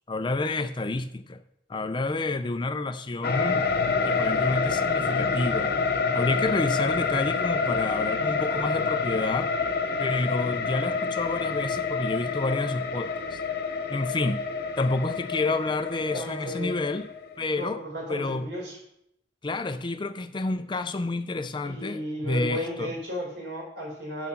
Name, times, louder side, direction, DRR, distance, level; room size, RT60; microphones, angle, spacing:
voice 1, 0.1-1.4 1.7-3.6 4.1-5.7 6.1-9.5 10.0-13.4 13.9-14.5 14.8-17.1 17.4-17.8 18.1-18.5 19.4-22.9, left 2 dB, 25° left, 10 dB, 0.5 m, -29 dB
sound 1, 3.2-17.4, left 5 dB, 60° left, 0.8 m, -28 dB
voice 2, 16.1-16.8 17.5-18.8 21.6-24.3, equal, 75° right, -2 dB, 4.5 m, -35 dB
7.5 x 7.3 x 5.8 m, 0.77 s
head